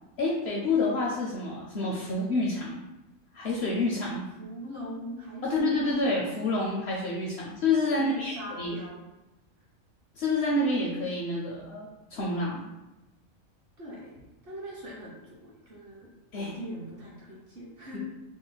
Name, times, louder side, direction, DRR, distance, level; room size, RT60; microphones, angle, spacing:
voice 1, 0.2-2.8 3.3-4.2 5.4-8.8 10.2-12.6 16.3-16.6, left 2 dB, 65° left, -3 dB, 0.7 m, -28 dB
voice 2, 4.4-5.9 7.9-9.0 13.8-14.1 14.4-16.1 16.3-18.0, right 1 dB, 50° right, -5 dB, 0.9 m, -41 dB
2.9 x 2.0 x 3.9 m, 0.98 s
omnidirectional pair, 1.4 m